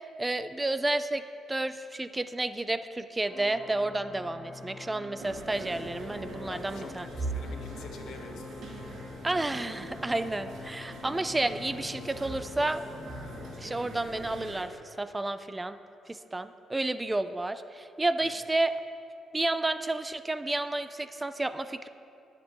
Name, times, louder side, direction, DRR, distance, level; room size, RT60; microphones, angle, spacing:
voice 1, 0.2-1.2 1.5-7.1 9.2-12.8 13.6-14.7 15.0-15.8 16.1-18.7 19.3-21.9, right 2 dB, 15° right, 11 dB, 0.4 m, -31 dB
Organ, 3.2-14.4, left 3 dB, 40° left, 1.0 m, -46 dB
sound 1, 5.2-14.6, right 2 dB, 75° right, 2.6 m, -42 dB
voice 2, 6.4-8.6 18.2-18.3, left 5 dB, 80° left, 5 dB, 1.0 m, -48 dB
22.0 x 7.5 x 3.1 m, 2.6 s
cardioid pair, 90°, 0 cm